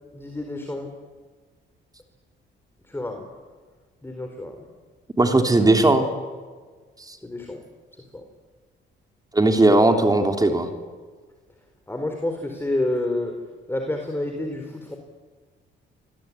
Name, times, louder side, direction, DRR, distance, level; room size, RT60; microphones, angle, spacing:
voice 1, 0.1-0.9 2.9-3.3 4.0-4.6 7.2-7.6 8.1-8.2 11.9-13.4 13.7-15.0, left 1 dB, 10° left, 4 dB, 4.4 m, -29 dB
voice 2, 5.2-6.1 7.1-7.2 9.3-10.7, right 2 dB, 20° right, 5 dB, 3.5 m, -18 dB
28.5 x 20.0 x 10.0 m, 1.5 s
cardioid pair, 90°, 20 cm